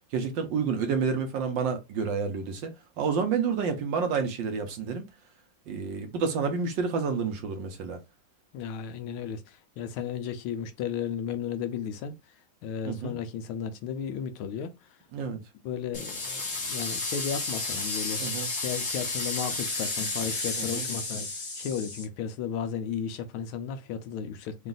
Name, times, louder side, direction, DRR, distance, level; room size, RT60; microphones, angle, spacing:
voice 1, 0.1-2.7 3.0-5.0 5.7-8.0 12.8-13.1 15.1-15.4 18.2-18.5 20.6-20.8, right 5 dB, 65° right, 1.3 m, -29 dB
voice 2, 8.5-12.1 12.6-14.7 15.6-18.2 18.5-24.7, left 7 dB, 80° left, 1.4 m, -34 dB
sound 1, 15.9-22.0, left 3 dB, 50° left, 1.8 m, -32 dB
3.9 x 2.5 x 3.8 m
omnidirectional pair, 2.4 m